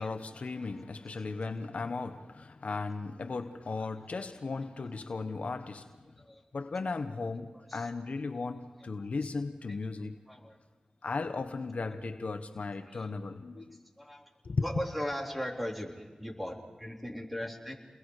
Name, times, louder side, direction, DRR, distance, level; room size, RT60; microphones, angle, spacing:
voice 1, 0.0-5.9 6.5-10.2 11.0-13.8 14.4-14.6, left 3 dB, 70° left, 1.1 m, -36 dB
voice 2, 7.5-7.9 10.3-10.6 12.8-13.1 13.6-13.7 14.0-14.2 14.6-17.7, equal, ahead, 3.9 m, -38 dB
30.0 x 21.5 x 4.9 m
cardioid pair, 45°, 2 cm